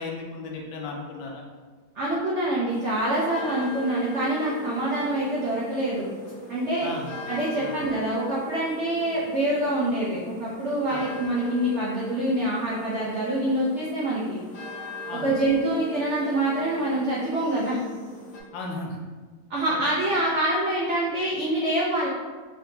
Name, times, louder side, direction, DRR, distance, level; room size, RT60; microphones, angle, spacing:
voice 1, 0.0-1.4 6.8-7.1 7.6-7.7 10.9-11.0 15.1-15.3 18.5-19.0 19.7-19.8, left 3 dB, 80° left, 0 dB, 1.4 m, -35 dB
voice 2, 2.0-6.1 6.5-6.9 7.3-14.4 15.2-17.8 19.5-22.1, right 1 dB, 75° right, -6 dB, 0.6 m, -25 dB
sound 1, 2.7-18.4, right 1 dB, 65° left, 1.2 m, -40 dB
3.9 x 3.4 x 2.7 m, 1.4 s
omnidirectional pair, 2.1 m